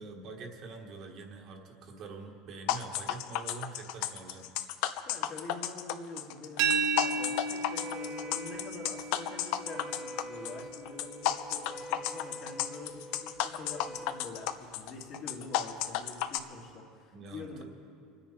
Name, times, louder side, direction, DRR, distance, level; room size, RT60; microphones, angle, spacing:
voice 1, 0.0-4.5 17.1-17.6, right 3 dB, 40° right, 2 dB, 1.4 m, -45 dB
sound 1, 2.7-16.4, left 12 dB, 60° left, 0.6 m, -33 dB
voice 2, 5.0-17.6, left 3 dB, 45° left, -1 dB, 2.5 m, -46 dB
sound 2, 6.6-12.3, right 4 dB, 65° right, 1.2 m, -35 dB
Wind instrument woodwind instrument, 7.7-14.4, right 1 dB, 5° left, 0.3 m, -46 dB
25.0 x 9.9 x 4.4 m, 2.3 s
cardioid pair, 160°, 0 cm